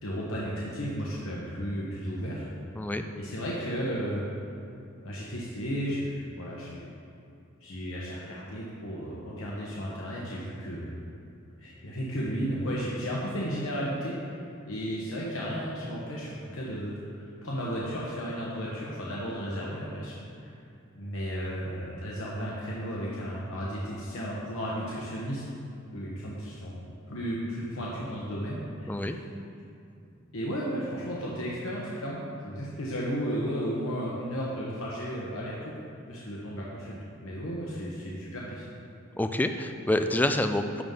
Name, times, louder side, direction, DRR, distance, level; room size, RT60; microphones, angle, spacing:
voice 1, 0.0-2.5 3.2-4.2 5.0-6.9 7.6-10.9 11.6-14.2 14.7-20.5 20.9-25.4 25.9-26.8 27.1-29.2 30.3-32.2 32.4-35.8 36.1-37.0 37.2-38.6, equal, 85° left, -5 dB, 1.1 m, -34 dB
voice 2, 39.2-40.8, left 1 dB, 10° left, 7 dB, 0.3 m, -27 dB
11.0 x 3.7 x 5.6 m, 2.6 s
head